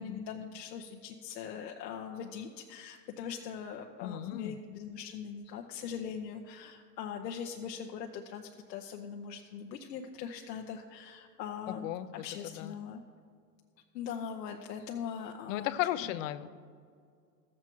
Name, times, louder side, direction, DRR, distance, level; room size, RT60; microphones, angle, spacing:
voice 1, 0.0-13.0 13.9-15.7, left 7 dB, 80° left, 2 dB, 0.9 m, -41 dB
voice 2, 4.0-4.6 11.7-12.7 15.5-16.5, left 13 dB, 55° left, 14 dB, 0.5 m, -35 dB
13.5 x 7.5 x 4.5 m, 2.1 s
supercardioid pair, 150°, 48 cm